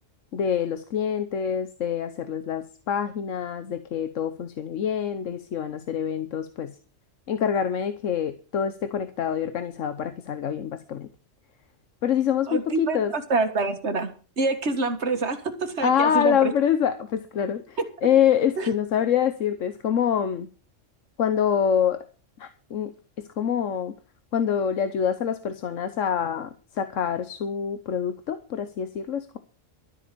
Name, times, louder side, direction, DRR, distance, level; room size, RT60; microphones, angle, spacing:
voice 1, 0.3-6.8 7.3-11.1 12.0-13.1 15.8-20.5 21.2-22.0 22.4-22.9 23.2-23.9 24.3-29.4, left 8 dB, 80° left, 10 dB, 1.3 m, -26 dB
voice 2, 12.5-16.5 18.6-18.7, right 3 dB, 60° right, 7 dB, 1.9 m, -26 dB
12.5 x 8.2 x 6.8 m, 0.38 s
omnidirectional pair, 1.3 m